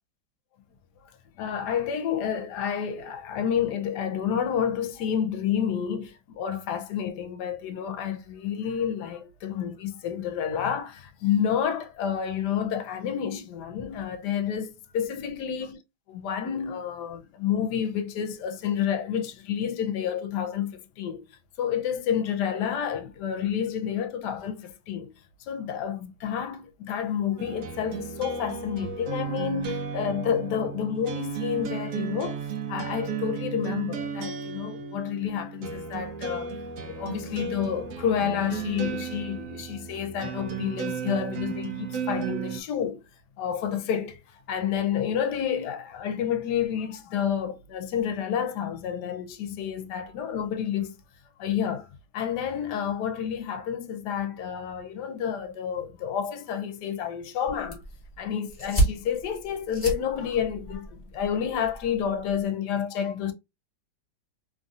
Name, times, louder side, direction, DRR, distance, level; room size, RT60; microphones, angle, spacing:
voice 1, 1.4-15.8 16.1-21.2 21.6-25.1 25.4-32.4 32.7-36.5 36.8-43.0 43.4-44.2 44.5-50.9 51.4-51.9 52.1-57.8 58.2-63.3, left 8 dB, 75° left, 1.1 m, -29 dB
sound 1, 27.4-42.6, right 6 dB, 65° right, 0.8 m, -34 dB
sound 2, 57.5-62.5, right 2 dB, 20° left, 1.1 m, -32 dB
3.2 x 2.6 x 2.3 m
omnidirectional pair, 1.9 m